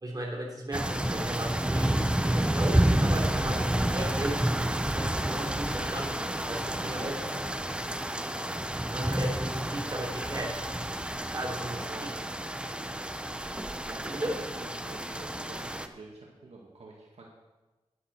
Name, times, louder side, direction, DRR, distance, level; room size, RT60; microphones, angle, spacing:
voice 1, 0.0-4.4 4.9-7.2 8.9-10.6 11.3-11.8 14.0-14.3, right 1 dB, 35° right, -1 dB, 3.4 m, -36 dB
sound 1, 0.7-15.9, right 1 dB, 10° right, 0.7 m, -30 dB
voice 2, 6.7-7.1 11.6-12.1 13.9-17.3, right 3 dB, 75° right, -2 dB, 1.9 m, -47 dB
11.5 x 10.5 x 4.4 m, 1.2 s
wide cardioid pair, 75°, 11 cm